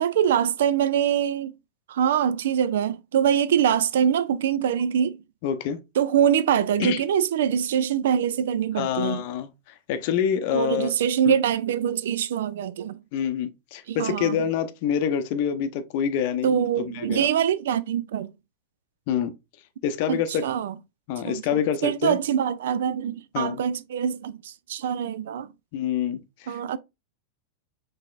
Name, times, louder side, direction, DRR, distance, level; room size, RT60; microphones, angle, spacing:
voice 1, 0.0-1.5 1.9-5.2 6.0-9.2 10.5-13.0 13.9-14.4 16.4-18.3 20.1-20.7 21.2-25.5 26.5-26.8, right 9 dB, 60° right, 0.3 m, -24 dB
voice 2, 5.4-5.8 6.8-7.0 8.8-9.5 9.9-10.9 11.3-11.4 13.1-16.6 16.9-17.3 19.1-19.3 19.8-20.4 21.1-22.2 23.3-23.6 25.7-26.6, left 8 dB, 50° left, 0.6 m, -26 dB
5.5 x 3.4 x 2.3 m
figure-of-eight pair, 90°, 0 cm